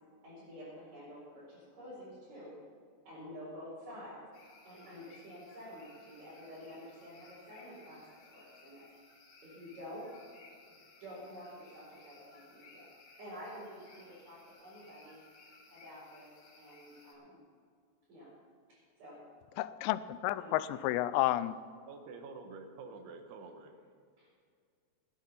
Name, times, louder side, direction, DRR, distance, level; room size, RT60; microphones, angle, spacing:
voice 1, 0.2-2.6 3.1-4.3 4.6-8.0 8.3-8.9 9.4-10.1 11.0-12.9 13.2-15.2 15.7-17.4 18.1-18.3 18.7-19.2 20.4-20.9 24.2-24.4, equal, 40° right, -10 dB, 5.6 m, -49 dB
sound 1, 4.3-17.1, left 3 dB, 65° left, 4.9 m, -60 dB
voice 2, 19.6-21.6, left 15 dB, 85° left, 14 dB, 2.6 m, -31 dB
voice 3, 21.9-23.7, right 4 dB, 80° right, 5 dB, 3.7 m, -48 dB
18.0 x 10.0 x 5.6 m, 2.1 s
omnidirectional pair, 5.4 m